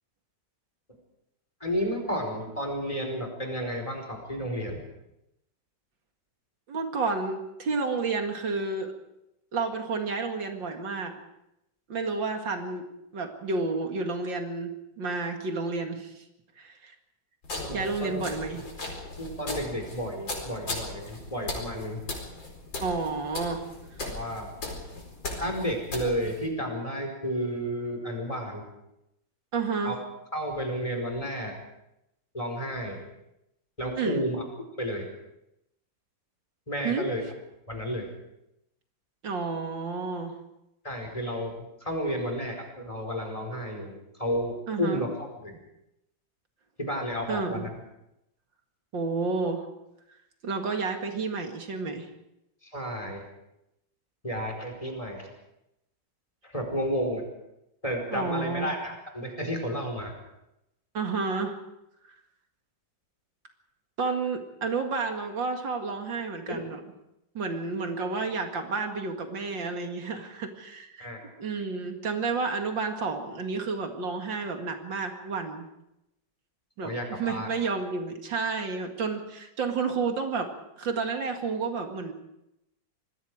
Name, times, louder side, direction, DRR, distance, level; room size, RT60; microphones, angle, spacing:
voice 1, 1.6-4.8 17.6-18.3 19.2-22.0 24.0-24.5 25.4-28.6 29.8-30.0 30.3-31.5 32.3-33.0 33.8-34.4 34.8-35.1 36.7-37.2 37.7-38.1 40.8-41.5 41.8-43.9 44.2-45.1 45.4-45.5 46.8-47.7 52.6-53.3 54.2-55.3 56.4-57.2 57.8-60.1 66.5-66.7 71.0-71.2 76.8-77.5, equal, 15° left, 2 dB, 4.9 m, -32 dB
voice 2, 6.7-8.9 9.5-11.2 11.9-12.9 13.1-16.2 16.6-16.9 17.7-18.6 22.8-23.6 29.5-30.0 34.0-34.3 36.8-37.1 39.2-40.4 44.7-45.0 47.3-47.7 48.9-49.7 50.4-52.1 58.1-58.8 60.9-61.6 64.0-66.8 67.3-75.7 76.8-80.5 80.8-82.1, right 4 dB, 80° right, 4 dB, 2.7 m, -31 dB
sound 1, 17.4-26.5, left 2 dB, 80° left, 5.3 m, -38 dB
26.5 x 20.0 x 5.0 m, 0.86 s
omnidirectional pair, 2.0 m